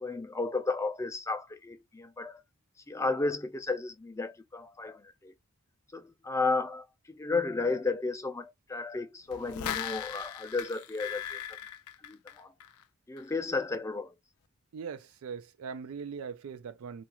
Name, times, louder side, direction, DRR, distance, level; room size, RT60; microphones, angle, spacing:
voice 1, 0.0-2.4 2.9-5.3 5.9-11.4 12.1-12.5 13.1-14.1, left 3 dB, 15° left, 0.4 m, -33 dB
sound 1, 9.3-12.8 13.2-13.3, left 10 dB, 85° left, 0.4 m, -38 dB
voice 2, 14.7-17.0, right 6 dB, 75° right, 0.4 m, -40 dB
2.4 x 2.3 x 2.9 m
head